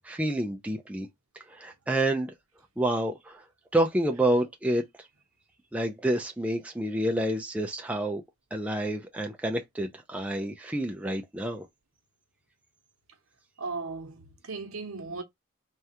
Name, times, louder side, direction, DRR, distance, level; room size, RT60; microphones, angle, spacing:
voice 1, 0.0-1.1 1.5-2.3 2.8-3.4 3.7-5.1 5.7-8.2 8.5-11.7, right 1 dB, 5° right, 0.3 m, -28 dB
voice 2, 13.6-15.2, right 3 dB, 85° right, 0.8 m, -36 dB
3.3 x 2.3 x 2.8 m
head